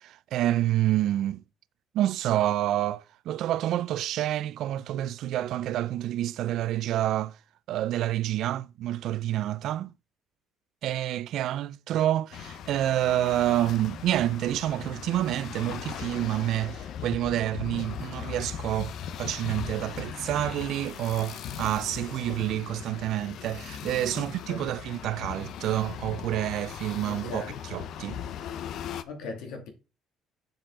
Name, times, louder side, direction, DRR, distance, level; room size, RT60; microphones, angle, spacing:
voice 1, 0.0-1.4 1.9-7.4 7.7-9.9 10.8-18.9 19.2-28.2, right 13 dB, 60° right, 0.4 m, -28 dB
sound 1, 12.3-29.0, left 9 dB, 60° left, 0.7 m, -39 dB
voice 2, 24.1-24.7 27.1-27.6 29.0-29.7, left 3 dB, 75° left, 2.4 m, -39 dB
7.6 x 6.8 x 3.8 m
cardioid pair, 145°, 0 cm